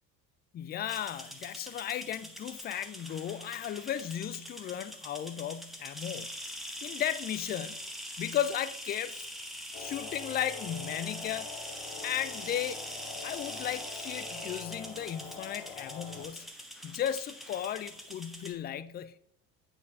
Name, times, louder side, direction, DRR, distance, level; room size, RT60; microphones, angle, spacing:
voice 1, 0.5-6.3 6.8-7.9 8.2-9.3 9.8-11.5 12.0-12.8 13.2-16.5 16.8-19.2, left 10 dB, 25° left, 0.4 m, -35 dB
sound 1, 0.9-18.5, equal, ahead, 1.4 m, -43 dB
sound 2, 9.7-16.2, left 5 dB, 50° left, 2.0 m, -45 dB
8.3 x 4.5 x 5.3 m
figure-of-eight pair, 65°, 47 cm